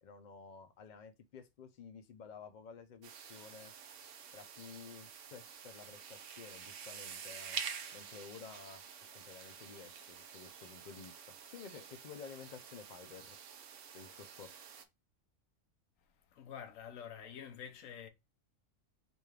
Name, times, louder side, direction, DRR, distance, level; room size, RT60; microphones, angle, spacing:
voice 1, 0.0-3.7 4.3-7.6 7.9-8.8 9.1-13.4 13.9-14.5, left 6 dB, 90° left, 0.4 m, -52 dB
sound 1, 3.0-14.8, right 7 dB, 65° right, 0.9 m, -48 dB
voice 2, 16.3-18.1, left 8 dB, 70° left, 1.1 m, -48 dB
5.0 x 2.4 x 3.2 m
omnidirectional pair, 1.5 m